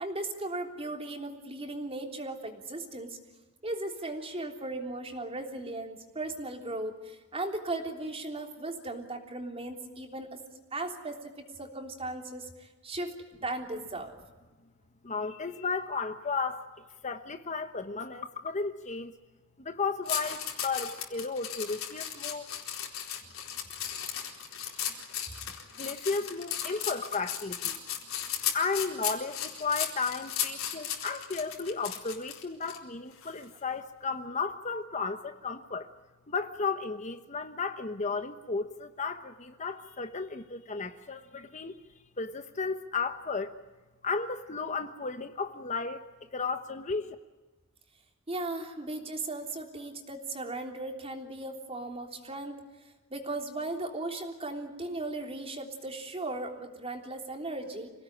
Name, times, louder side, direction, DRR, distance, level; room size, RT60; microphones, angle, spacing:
voice 1, 0.0-3.2 3.6-10.4 10.7-13.1 13.4-14.2 48.3-52.6 53.1-57.9, right 2 dB, 30° right, 3 dB, 3.4 m, -37 dB
voice 2, 15.0-16.7 17.0-19.1 19.6-22.5 25.8-27.8 28.5-35.9 36.3-41.8 42.2-43.5 44.0-46.0 46.3-47.1, left 4 dB, 35° left, 8 dB, 1.1 m, -34 dB
sound 1, 20.1-32.8 33.2-33.4, left 9 dB, 75° left, 4.3 m, -35 dB
27.0 x 18.0 x 9.9 m, 1.2 s
head